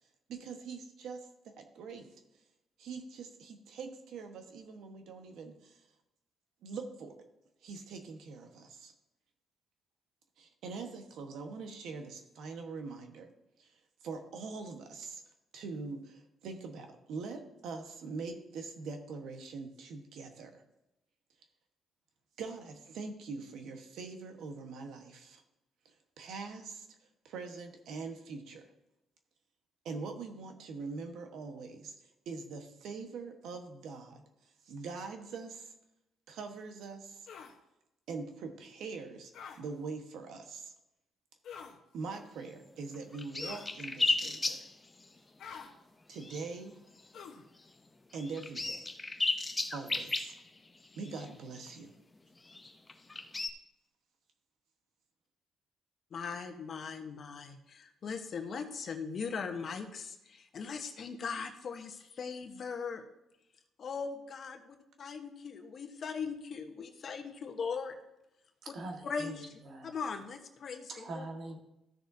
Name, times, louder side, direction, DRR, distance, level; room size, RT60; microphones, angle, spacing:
voice 1, 0.3-2.1 2.8-5.9 6.6-7.1 7.6-8.9 10.4-13.3 13.6-15.2 15.5-20.6 22.4-25.4 25.8-26.9 27.2-28.7 29.8-31.9 32.2-35.7 36.3-37.3 38.1-39.3 39.6-40.7 41.9-44.6 46.1-46.8 48.1-48.9 49.7-50.3 50.9-51.9, right 4 dB, 80° right, 5 dB, 1.3 m, -43 dB
sound 1, 37.3-37.5 39.3-39.6 41.4-41.8 43.4-43.7 45.4-45.7 47.1-47.5, left 7 dB, 75° left, 1.1 m, -47 dB
sound 2, 42.7-42.8 42.9-45.2 45.5-45.7 46.1-46.6 47.0-47.2 47.6-47.7 48.1-51.8 52.4-53.5, left 3 dB, 20° left, 0.7 m, -35 dB
voice 2, 56.1-63.0 63.8-68.0 69.0-69.3 69.8-71.2, left 5 dB, 55° left, 5 dB, 1.2 m, -39 dB
voice 3, 68.6-69.9 70.9-71.6, right 2 dB, 60° right, 3 dB, 1.6 m, -43 dB
14.5 x 6.5 x 2.8 m, 0.89 s
cardioid pair, 90°, 0 cm